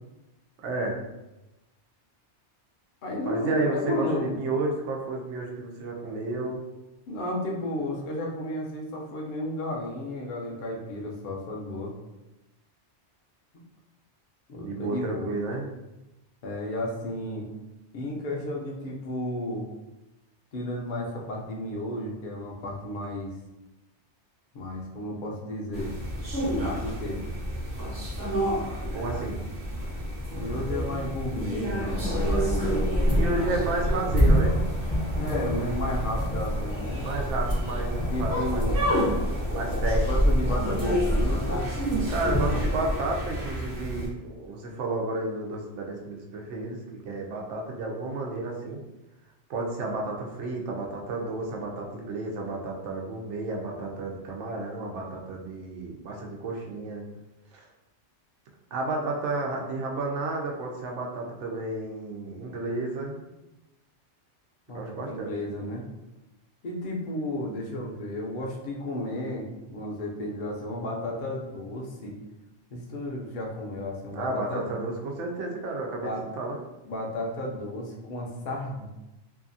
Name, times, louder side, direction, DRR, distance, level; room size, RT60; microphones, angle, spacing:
voice 1, 0.6-1.0 3.3-6.6 14.6-15.7 28.9-29.4 32.5-34.6 37.0-38.6 39.5-40.1 42.1-48.8 49.5-57.0 57.5-57.7 58.7-63.2 64.7-65.3 74.1-76.1 76.4-76.6, right 2 dB, 85° right, 1 dB, 0.9 m, -32 dB
voice 2, 3.0-4.4 7.1-11.9 14.5-15.3 16.4-17.5 17.9-19.7 20.5-23.3 24.5-26.0 26.5-27.2 30.4-32.8 35.2-37.1 37.7-37.8 38.1-38.8 40.1-41.7 64.7-65.8 66.6-72.2 72.7-74.7 76.0-76.2 76.9-78.9, left 1 dB, 55° left, -1 dB, 0.7 m, -33 dB
sound 1, 25.7-44.1, equal, 40° right, 0.9 m, -31 dB
sound 2, 31.9-43.0, equal, 20° left, 0.4 m, -27 dB
2.7 x 2.4 x 2.5 m, 0.98 s
omnidirectional pair, 1.2 m